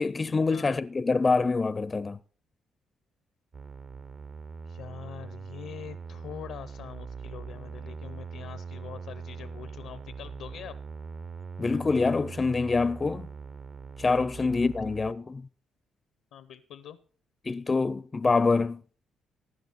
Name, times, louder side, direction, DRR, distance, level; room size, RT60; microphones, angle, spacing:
voice 1, 0.0-2.2 11.6-13.3 14.0-15.4 17.5-18.8, left 4 dB, 30° left, 0.5 m, -25 dB
sound 1, 3.5-15.1, right 5 dB, 45° right, 0.7 m, -41 dB
voice 2, 4.7-10.8 14.4-14.5 16.3-17.0, left 9 dB, 85° left, 0.7 m, -44 dB
16.0 x 10.5 x 4.1 m
cardioid pair, 90°, 0 cm